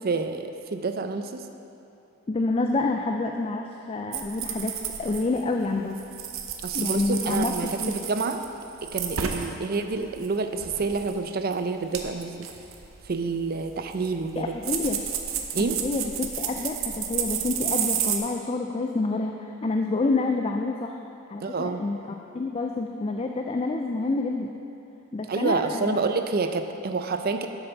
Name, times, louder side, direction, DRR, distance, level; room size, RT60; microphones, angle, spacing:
voice 1, 0.0-1.4 6.6-8.4 8.8-12.5 13.1-14.5 15.5-15.8 21.4-21.8 25.3-27.5, right 4 dB, 45° right, 7 dB, 0.5 m, -28 dB
voice 2, 2.3-6.0 6.7-7.9 14.4-15.0 15.8-21.0 21.3-22.0 22.3-24.5 25.1-26.0, left 3 dB, 30° left, 3 dB, 0.3 m, -28 dB
sound 1, 4.1-5.7 5.9-9.5 9.9-11.2 11.5-11.6 11.9-18.2, right 8 dB, 75° right, 0.8 m, -31 dB
8.1 x 6.7 x 5.8 m, 2.9 s
head